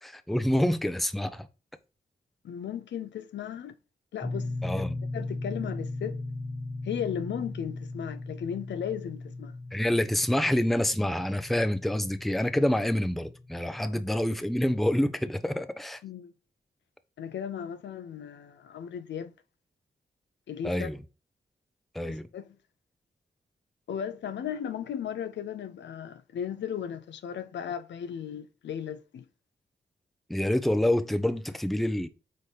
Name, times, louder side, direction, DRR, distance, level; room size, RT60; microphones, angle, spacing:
voice 1, 0.0-1.5 4.6-5.0 9.7-16.0 20.6-21.0 21.9-22.3 30.3-32.1, left 1 dB, ahead, 0.5 m, -27 dB
voice 2, 2.4-3.7 4.1-4.5 5.1-6.2 6.8-9.5 13.8-14.0 16.0-16.3 17.2-19.3 20.5-20.9 22.1-22.4 23.9-29.2, left 8 dB, 80° left, 0.6 m, -36 dB
sound 1, 4.2-13.8, left 2 dB, 20° left, 1.5 m, -38 dB
4.2 x 3.8 x 3.2 m
cardioid pair, 70°, 18 cm